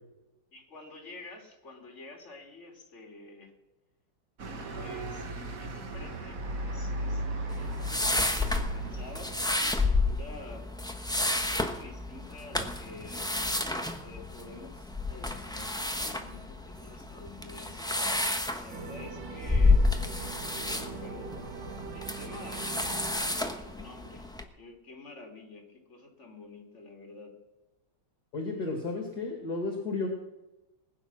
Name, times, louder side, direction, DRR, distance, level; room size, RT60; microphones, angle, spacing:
voice 1, 0.5-3.5 4.7-5.3 5.6-7.2 7.6-10.7 11.1-13.3 14.0-17.9 18.6-19.8 20.1-21.3 21.9-24.3 24.5-27.3, left 2 dB, 35° left, 2 dB, 3.2 m, -49 dB
sound 1, 4.4-9.5, right 1 dB, 45° right, 1.7 m, -36 dB
sound 2, 7.5-24.4, left 2 dB, 5° left, 0.4 m, -30 dB
sound 3, 18.7-24.2, right 5 dB, 60° right, 1.8 m, -43 dB
voice 2, 28.3-30.1, left 3 dB, 50° left, 2 dB, 2.5 m, -33 dB
20.0 x 9.6 x 6.2 m, 1.0 s
omnidirectional pair, 2.3 m